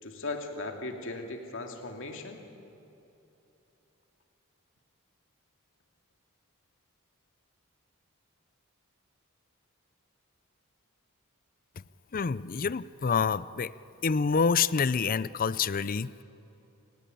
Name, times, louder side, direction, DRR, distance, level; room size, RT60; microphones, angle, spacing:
voice 1, 0.0-2.4, left 2 dB, 60° left, 3 dB, 2.6 m, -37 dB
voice 2, 12.1-13.7 14.0-16.2, left 5 dB, 40° left, 17 dB, 0.5 m, -27 dB
29.5 x 19.0 x 9.2 m, 2.9 s
head